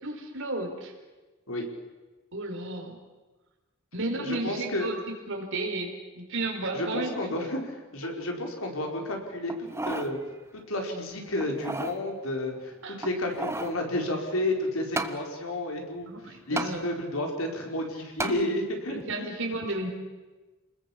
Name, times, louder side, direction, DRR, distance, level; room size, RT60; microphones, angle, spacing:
voice 1, 0.0-0.9 2.3-3.0 3.9-7.4 12.8-13.0 16.1-16.8 18.9-19.9, right 2 dB, 65° right, 3 dB, 4.8 m, -33 dB
voice 2, 4.2-4.9 6.7-10.2 10.7-12.7 13.0-19.3, left 1 dB, 75° left, 2 dB, 4.9 m, -31 dB
sound 1, 9.5-10.1 10.6-10.7 11.4-12.0 13.0-13.8 15.0-15.2 16.6-16.7 18.2-18.4 19.0-19.1, right 2 dB, 15° right, 1.3 m, -32 dB
28.0 x 21.0 x 7.4 m, 1.2 s
head